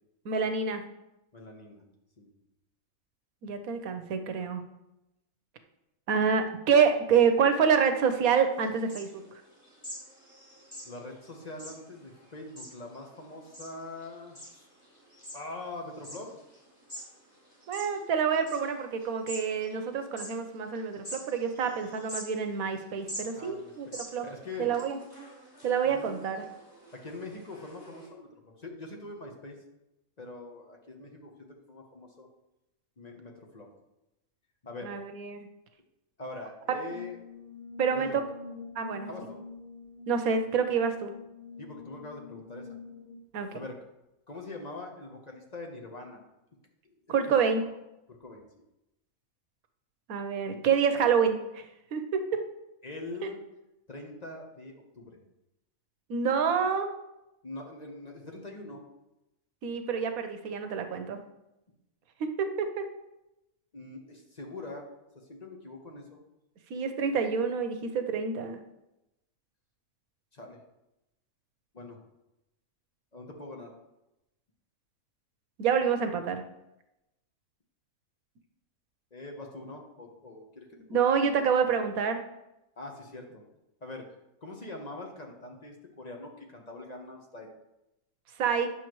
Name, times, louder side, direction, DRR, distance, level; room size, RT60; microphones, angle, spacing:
voice 1, 0.2-0.8 3.4-4.6 6.1-9.2 17.7-24.2 24.6-25.0 25.6-26.4 34.8-35.5 37.8-38.2 38.8-39.1 40.1-41.1 43.3-43.5 47.1-47.6 50.1-51.6 51.9-52.2 53.2-53.3 56.1-56.9 59.6-61.2 62.2-62.9 66.7-68.6 75.6-76.4 80.9-82.2 88.4-88.7, right 6 dB, 85° right, 7 dB, 1.3 m, -27 dB
voice 2, 1.3-1.8 2.2-2.3 10.8-14.4 15.3-16.3 23.4-24.0 24.2-24.7 25.8-26.3 26.9-28.3 28.6-29.5 30.2-32.3 33.0-33.7 34.6-35.0 36.2-37.2 37.9-38.2 39.1-39.4 40.7-40.8 41.6-42.7 43.5-43.8 44.3-46.2 46.8-47.2 48.1-48.5 50.5-50.6 52.8-53.4 53.9-55.2 57.4-58.8 63.7-64.9 65.1-66.2 70.3-70.6 71.7-72.0 73.1-73.7 79.1-81.0 82.8-83.4 83.8-84.0 84.4-87.5, left 2 dB, 35° left, 1 dB, 1.1 m, -43 dB
sound 1, 8.5-28.1, equal, 15° left, 3.4 m, -47 dB
Brass instrument, 36.9-43.3, left 4 dB, 80° left, 2.7 m, -46 dB
9.7 x 6.4 x 3.1 m, 0.92 s
omnidirectional pair, 1.4 m